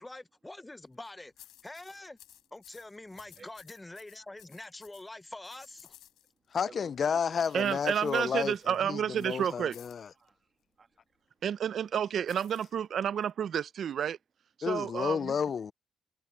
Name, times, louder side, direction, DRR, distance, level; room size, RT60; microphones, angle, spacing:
voice 1, 0.0-2.2 2.5-5.9, left 2 dB, 15° left, 0.8 m, -46 dB
sound 1, 0.9-6.6 7.3-10.1 12.3-13.3, left 13 dB, 85° left, 3.7 m, -58 dB
voice 2, 3.1-3.5 6.3-8.0 10.2-11.4, right 5 dB, 35° right, 2.2 m, -56 dB
voice 3, 6.5-8.5 8.9-10.1 14.6-15.7, left 6 dB, 50° left, 0.4 m, -31 dB
voice 4, 7.5-9.8 11.4-14.2 14.6-15.3, right 8 dB, 60° right, 0.6 m, -30 dB
cardioid pair, 90°, 0 cm